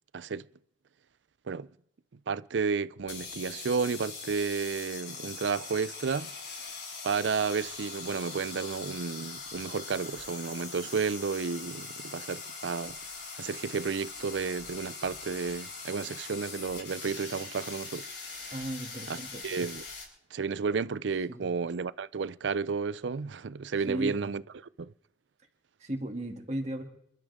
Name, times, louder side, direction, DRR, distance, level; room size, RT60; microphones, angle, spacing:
voice 1, 0.1-0.5 1.5-1.7 2.3-6.3 7.0-13.0 13.4-18.5 19.1-19.2 19.4-19.8 20.3-24.4 24.8-24.9, right 5 dB, 80° right, 0.5 m, -32 dB
sound 1, 3.0-20.0, left 4 dB, 70° left, 6.7 m, -42 dB
voice 2, 18.5-19.4 21.3-21.5 23.9-24.3 25.8-26.8, right 1 dB, 40° right, 2.6 m, -35 dB
27.5 x 12.5 x 3.7 m
head